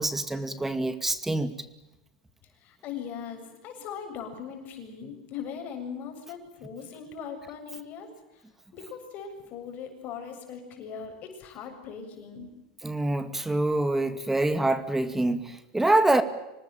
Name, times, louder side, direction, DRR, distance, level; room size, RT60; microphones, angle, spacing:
voice 1, 0.0-1.5 12.8-16.2, right 2 dB, 5° right, 11 dB, 2.3 m, -25 dB
voice 2, 2.6-8.1 8.7-12.5, left 7 dB, 40° left, 5 dB, 7.3 m, -39 dB
26.0 x 19.5 x 9.0 m, 0.97 s
supercardioid pair, 120°, 4 cm